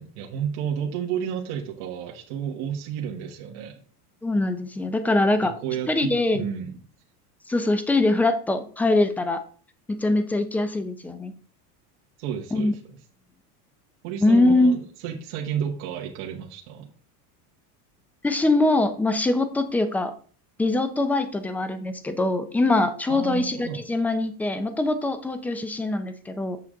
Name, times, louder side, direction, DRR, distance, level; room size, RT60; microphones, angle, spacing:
voice 1, 0.0-3.8 5.4-6.8 12.2-12.8 14.0-16.9 23.1-23.8, right 8 dB, 55° right, -1 dB, 1.6 m, -31 dB
voice 2, 4.2-5.5 5.9-6.4 7.5-9.4 9.9-11.3 12.5-12.7 14.2-14.8 18.2-20.1 20.6-26.6, left 2 dB, 5° left, 10 dB, 0.3 m, -23 dB
8.5 x 6.6 x 3.7 m, 0.44 s
supercardioid pair, 145°, 46 cm